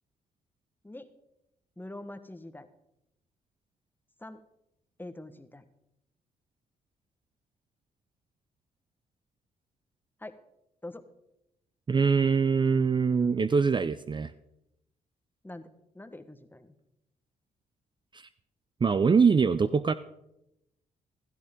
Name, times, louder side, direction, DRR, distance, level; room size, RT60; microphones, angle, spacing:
voice 1, 1.8-2.7 4.2-4.4 5.0-5.6 10.2-10.4 10.8-11.1 15.4-15.7 15.9-16.7, left 1 dB, 10° left, 10 dB, 1.2 m, -44 dB
voice 2, 11.9-14.3 18.1-18.3 18.8-19.9, right 5 dB, 30° right, 14 dB, 0.5 m, -23 dB
15.5 x 13.0 x 3.7 m, 0.86 s
supercardioid pair, 55°, 16 cm